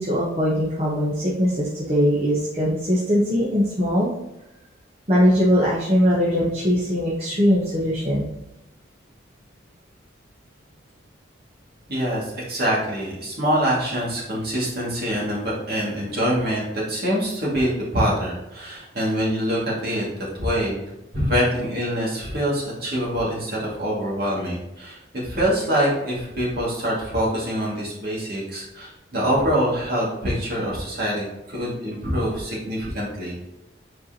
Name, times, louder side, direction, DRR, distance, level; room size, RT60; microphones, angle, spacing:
voice 1, 0.0-4.1 5.1-8.3, equal, 30° right, -7 dB, 1.1 m, -21 dB
voice 2, 11.9-20.0 20.3-20.8 21.1-33.3, equal, 50° right, -5 dB, 2.3 m, -25 dB
7.6 x 4.6 x 2.9 m, 0.92 s
head